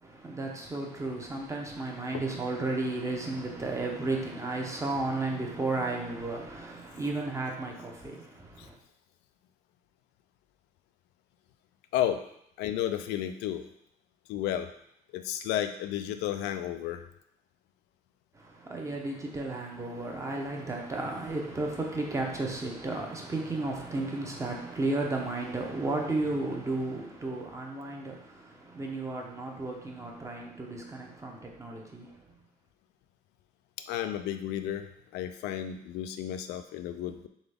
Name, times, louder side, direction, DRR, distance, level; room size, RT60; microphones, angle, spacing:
voice 1, 0.0-8.8 18.3-32.3, right 2 dB, 15° right, 0 dB, 0.9 m, -33 dB
voice 2, 12.6-13.7 14.3-14.7 15.1-17.0 33.9-34.9 35.1-37.3, left 11 dB, 90° left, 8 dB, 0.4 m, -32 dB
3.9 x 3.4 x 3.4 m, 0.72 s
cardioid pair, 110°, 17 cm